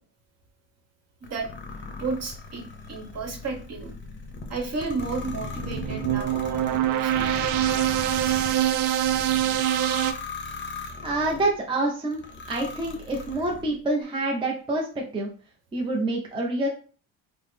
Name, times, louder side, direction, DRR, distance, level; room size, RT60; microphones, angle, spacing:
sound 1, 1.2-11.5 12.1-13.7, left 4 dB, 30° left, 0.7 m, -38 dB
voice 1, 2.0-3.9 4.5-7.5, right 4 dB, 45° right, 2 dB, 1.1 m, -33 dB
sound 2, 5.3-10.1, right 12 dB, 70° right, 0.5 m, -24 dB
voice 2, 11.0-12.2 12.5-15.3 15.7-16.7, right 2 dB, 15° right, -1 dB, 0.5 m, -27 dB
3.8 x 2.0 x 3.2 m, 0.39 s
cardioid pair, 125°, 36 cm